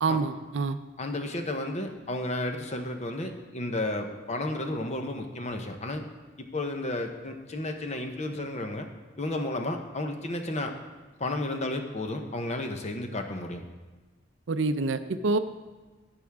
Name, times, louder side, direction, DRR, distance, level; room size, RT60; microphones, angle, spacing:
voice 1, 0.0-0.8 14.5-15.4, right 3 dB, 65° right, 11 dB, 0.5 m, -26 dB
voice 2, 1.0-6.1 6.5-8.9 9.2-10.7 11.2-13.6, left 2 dB, 35° left, 5 dB, 0.8 m, -32 dB
11.0 x 8.8 x 3.5 m, 1.3 s
head